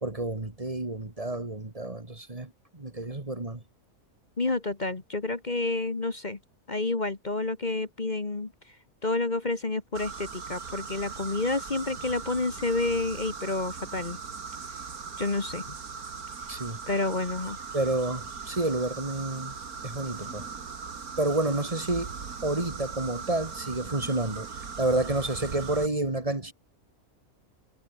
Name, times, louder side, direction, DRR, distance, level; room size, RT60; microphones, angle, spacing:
voice 1, 0.0-3.6 16.5-16.8 17.7-19.6 19.8-20.5 21.2-22.1 22.4-24.5 24.8-26.5, right 2 dB, 25° right, 2.2 m, -29 dB
voice 2, 4.4-6.4 6.7-8.5 9.0-14.2 15.2-15.7 16.9-17.6, left 3 dB, 30° left, 1.6 m, -29 dB
sound 1, 9.9-25.9, right 5 dB, 75° right, 2.6 m, -39 dB
omnidirectional pair, 1.6 m